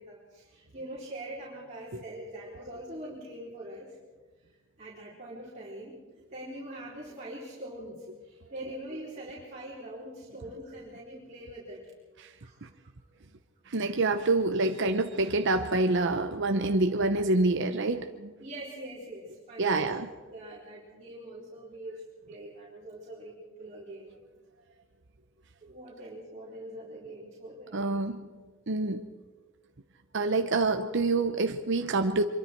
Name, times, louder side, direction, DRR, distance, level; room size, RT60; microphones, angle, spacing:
voice 1, 0.0-3.9 4.8-11.8 12.4-12.6 18.4-19.9 20.3-22.0 22.3-24.1 25.6-28.0, right 1 dB, 35° right, -7 dB, 4.4 m, -43 dB
voice 2, 13.7-18.3 19.6-20.1 27.7-28.3 28.7-29.1 30.1-32.2, right 2 dB, 60° right, 6 dB, 0.9 m, -27 dB
24.5 x 23.0 x 4.6 m, 1.3 s
head